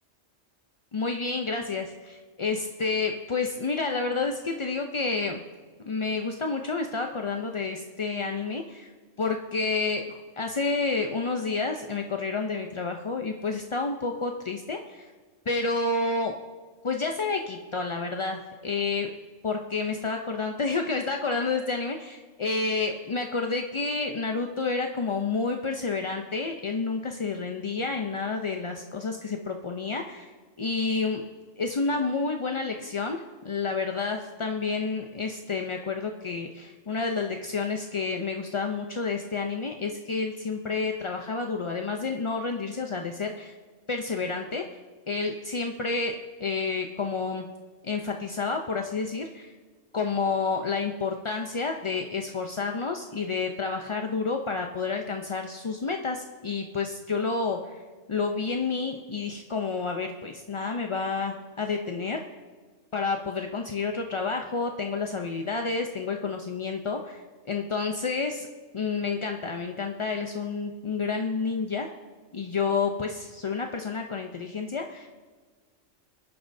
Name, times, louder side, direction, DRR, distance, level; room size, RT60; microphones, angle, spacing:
voice 1, 0.9-5.4 5.9-8.9 9.2-15.1 15.5-16.3 16.8-19.1 19.4-31.2 31.6-43.5 43.9-44.6 45.1-47.5 47.8-49.5 49.9-57.8 58.1-62.2 62.9-68.5 68.7-71.9 72.3-75.1, left 4 dB, 45° left, 3 dB, 0.4 m, -30 dB
20.5 x 10.5 x 2.6 m, 1.4 s
omnidirectional pair, 1.3 m